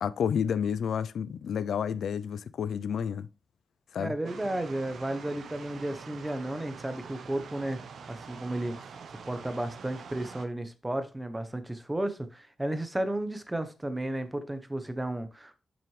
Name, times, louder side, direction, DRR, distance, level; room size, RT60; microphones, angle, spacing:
voice 1, 0.0-3.3 3.9-4.1, left 7 dB, 85° left, 0.3 m, -30 dB
voice 2, 4.0-7.8 8.1-9.0 9.3-15.6, right 1 dB, 15° right, 0.8 m, -33 dB
sound 1, 4.2-10.5, right 6 dB, 80° right, 0.8 m, -45 dB
7.2 x 5.8 x 3.1 m
wide cardioid pair, 115°, 0 cm